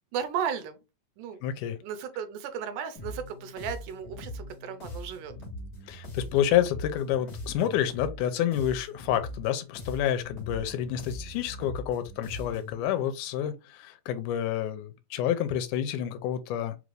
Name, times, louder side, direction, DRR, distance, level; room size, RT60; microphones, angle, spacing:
voice 1, 0.1-0.8 1.2-1.4 1.8-5.3, right 8 dB, 90° right, 2.2 m, -35 dB
voice 2, 1.4-1.8 5.9-16.8, left 10 dB, 80° left, 2.1 m, -29 dB
sound 1, 2.9-12.8, left 1 dB, 40° left, 1.4 m, -41 dB
5.1 x 2.5 x 3.2 m
omnidirectional pair, 3.7 m